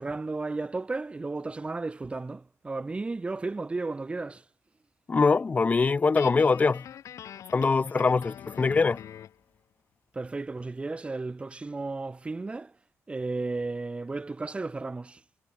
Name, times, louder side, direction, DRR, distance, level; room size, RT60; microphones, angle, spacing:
voice 1, 0.0-4.4 10.1-12.7 13.1-15.2, right 3 dB, 20° right, 3.6 m, -34 dB
voice 2, 5.1-6.8 7.5-9.0, left 4 dB, 30° left, 0.9 m, -23 dB
Guitar, 6.2-9.4, left 10 dB, 75° left, 6.6 m, -44 dB
wide cardioid pair, 135°, 5 cm